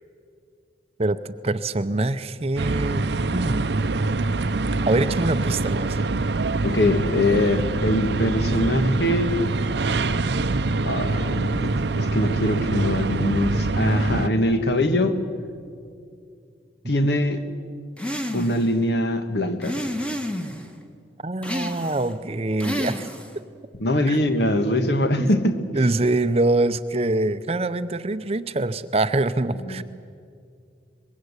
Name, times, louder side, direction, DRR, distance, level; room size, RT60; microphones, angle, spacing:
voice 1, 1.0-3.6 4.9-6.0 21.2-23.1 24.1-24.2 25.2-25.3 25.7-29.8, right 2 dB, 35° right, 12 dB, 0.6 m, -24 dB
sound 1, 2.6-14.3, right 3 dB, 70° right, 0.7 m, -24 dB
voice 2, 6.6-9.4 10.8-15.2 16.8-17.4 18.3-19.8 23.8-25.6 29.6-29.8, left 1 dB, 65° left, 9 dB, 1.5 m, -22 dB
sound 2, 18.0-18.7 19.6-20.7 21.4-22.1 22.6-23.4, equal, 5° left, 1.2 m, -30 dB
23.5 x 21.0 x 8.2 m, 2.3 s
head